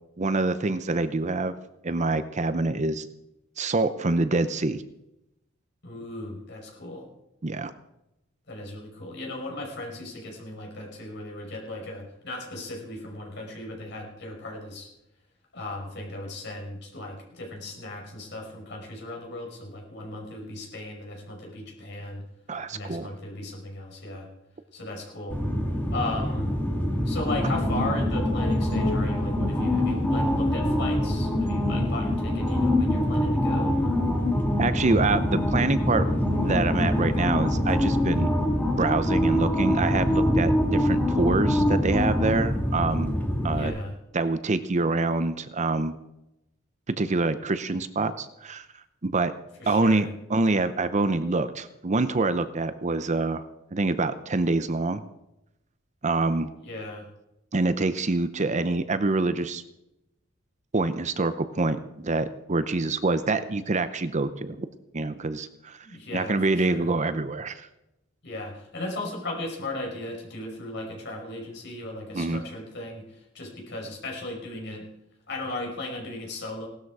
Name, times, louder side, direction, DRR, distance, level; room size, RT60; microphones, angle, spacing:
voice 1, 0.2-1.5 1.8-3.1 3.6-4.8 7.4-7.7 22.5-23.1 34.6-36.1 36.4-38.3 38.8-43.2 43.4-43.7 44.1-45.9 46.9-48.7 49.0-49.3 49.7-53.4 53.7-55.0 56.0-56.5 57.5-59.6 60.7-64.7 64.9-65.9 66.1-67.7 72.1-72.4, right 3 dB, 35° right, 12 dB, 0.7 m, -26 dB
voice 2, 5.8-7.1 8.5-14.9 15.5-22.3 22.7-24.3 24.7-25.4 25.9-26.5 27.1-34.0 43.5-43.9 49.6-50.1 56.6-57.1 65.8-66.9 68.2-74.8 75.3-76.7, left 2 dB, 60° left, 0 dB, 5.6 m, -36 dB
sound 1, 25.3-43.7, left 1 dB, 10° left, 2.4 m, -24 dB
18.0 x 12.5 x 4.8 m, 0.88 s
head